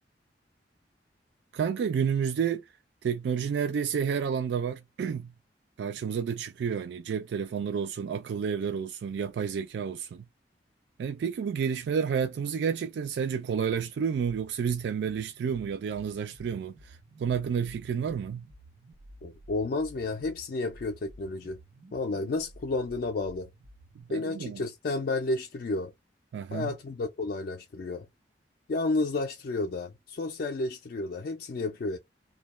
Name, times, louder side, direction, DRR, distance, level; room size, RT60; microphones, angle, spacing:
voice 1, 1.5-2.7 3.0-5.3 5.8-10.3 11.0-18.5 24.0-24.6 26.3-26.7, right 7 dB, 75° right, 0.3 m, -30 dB
sound 1, 14.1-24.0, right 1 dB, 90° right, 0.8 m, -53 dB
voice 2, 19.2-21.6 21.9-23.5 24.1-25.9 26.5-28.1 28.7-32.0, left 3 dB, 55° left, 0.3 m, -31 dB
2.2 x 2.1 x 2.9 m
head